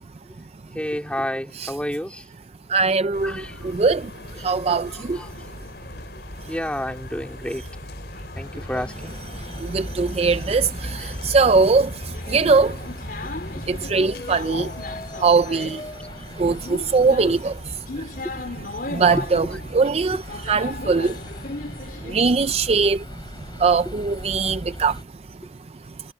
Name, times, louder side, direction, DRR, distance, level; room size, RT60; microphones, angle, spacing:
voice 1, 0.7-2.3 3.2-3.7 4.3-4.5 4.9-5.3 6.4-7.6 8.4-9.1 10.3-10.4 10.8-11.2 13.7-13.8 19.1-19.6 23.8-24.0, equal, 5° left, 3.0 m, -31 dB
voice 2, 2.7-4.1 4.4-5.2 9.4-12.8 13.6-14.7 15.2-15.9 16.4-18.1 18.8-19.4 19.7-21.2 22.0-23.1 23.6-25.0, right 4 dB, 35° right, 0.4 m, -21 dB
sound 1, 3.1-15.1, left 1 dB, 70° left, 5.7 m, -40 dB
sound 2, 5.1-22.2, left 2 dB, 55° left, 3.9 m, -38 dB
sound 3, 8.3-25.0, left 1 dB, 25° left, 3.3 m, -38 dB
head